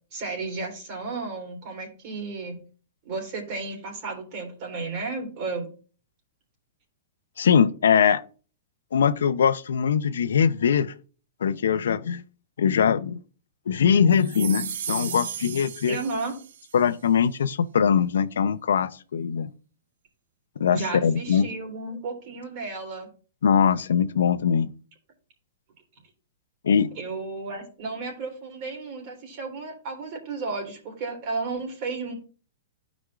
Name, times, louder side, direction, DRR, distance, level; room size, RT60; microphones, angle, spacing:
voice 1, 0.1-2.6 3.0-5.7 15.9-16.3 20.7-23.1 26.9-32.1, right 3 dB, 40° right, 3.3 m, -33 dB
voice 2, 7.4-8.2 8.9-10.9 11.4-12.2 12.6-13.2 13.7-16.0 16.7-19.5 20.6-21.5 23.4-24.7 26.6-26.9, left 7 dB, 90° left, 0.6 m, -22 dB
sound 1, 14.2-16.7, right 9 dB, 70° right, 0.7 m, -35 dB
12.5 x 5.1 x 2.4 m
hypercardioid pair, 150°, 0 cm